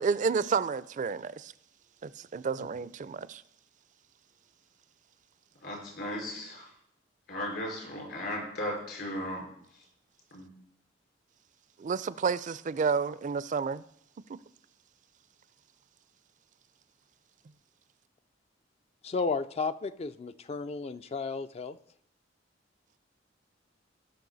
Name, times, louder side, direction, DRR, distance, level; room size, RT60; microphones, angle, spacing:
voice 1, 0.0-1.5 2.0-3.4 11.8-13.8, right 5 dB, 45° right, 0.4 m, -30 dB
voice 2, 5.6-6.7 7.3-9.4 10.3-10.5, left 1 dB, 65° left, 4.8 m, -36 dB
voice 3, 19.0-21.8, left 4 dB, 35° left, 0.3 m, -33 dB
16.5 x 6.2 x 4.0 m
head